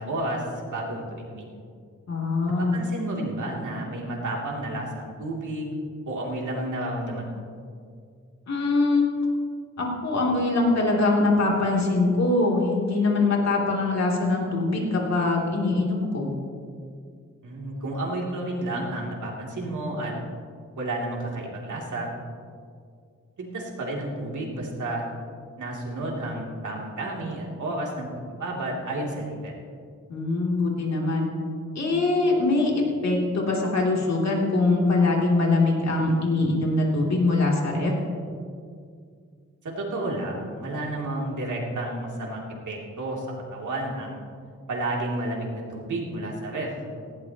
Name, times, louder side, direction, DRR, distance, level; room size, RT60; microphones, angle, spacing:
voice 1, 0.0-1.6 2.6-5.7 6.1-7.4 17.4-20.1 20.8-22.1 23.4-25.0 25.6-29.5 39.6-43.3 43.5-44.2 44.7-47.0, right 1 dB, 80° right, -3 dB, 3.0 m, -31 dB
voice 2, 2.1-2.8 8.5-9.1 9.8-16.3 30.1-31.3 31.7-37.9, left 2 dB, 65° left, -2 dB, 3.0 m, -23 dB
18.5 x 16.0 x 3.0 m, 2.2 s
wide cardioid pair, 130°, 30 cm